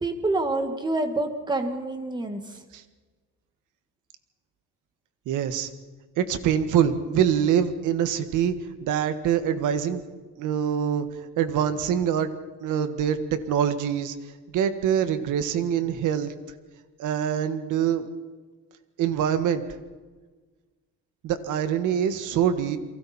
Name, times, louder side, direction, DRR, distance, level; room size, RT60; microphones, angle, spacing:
voice 1, 0.0-2.6, right 2 dB, 15° right, 6 dB, 1.7 m, -27 dB
voice 2, 5.3-5.7 6.2-8.5 8.8-10.0 10.4-11.1 11.4-12.3 12.6-14.2 14.5-16.3 17.0-18.1 19.0-19.6 21.2-22.8, right 9 dB, 70° right, 10 dB, 1.7 m, -24 dB
29.5 x 23.5 x 4.3 m, 1.4 s
cardioid pair, 180°, 31 cm